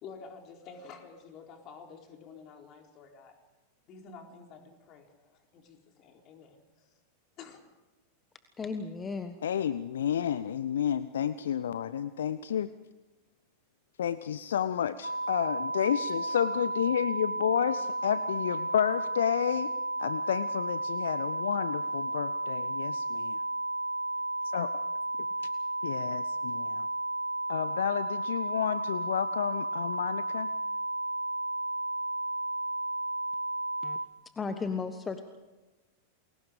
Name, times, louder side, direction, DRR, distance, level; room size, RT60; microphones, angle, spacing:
voice 1, 0.0-3.4 3.9-7.0 7.4-7.6 16.0-16.3, left 5 dB, 35° left, 3 dB, 4.1 m, -50 dB
voice 2, 8.6-9.4 33.8-34.0 34.3-35.2, left 4 dB, 15° left, 9 dB, 1.4 m, -34 dB
voice 3, 9.4-12.7 14.0-19.7 20.0-23.4 24.5-24.7 25.8-26.9 27.5-30.5, left 9 dB, 65° left, 16 dB, 0.6 m, -31 dB
sound 1, 15.0-34.1, right 2 dB, 85° right, 0.8 m, -33 dB
30.0 x 22.0 x 5.2 m, 1.1 s
figure-of-eight pair, 90°, 0 cm